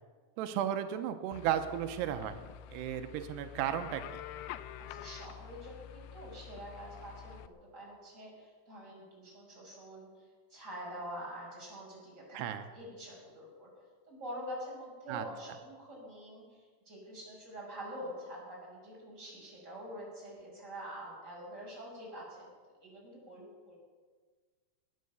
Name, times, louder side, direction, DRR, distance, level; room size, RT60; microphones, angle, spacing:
voice 1, 0.4-2.4 2.7-4.2 12.3-12.7 15.1-15.2, right 10 dB, 90° right, 8 dB, 2.8 m, -34 dB
sound 1, 1.3-7.5, left 11 dB, 85° left, 2.7 m, -47 dB
voice 2, 4.8-10.2 10.5-13.7 14.1-22.5 22.8-23.7, equal, 15° right, -4 dB, 5.9 m, -46 dB
20.0 x 9.5 x 6.8 m, 1.5 s
omnidirectional pair, 4.8 m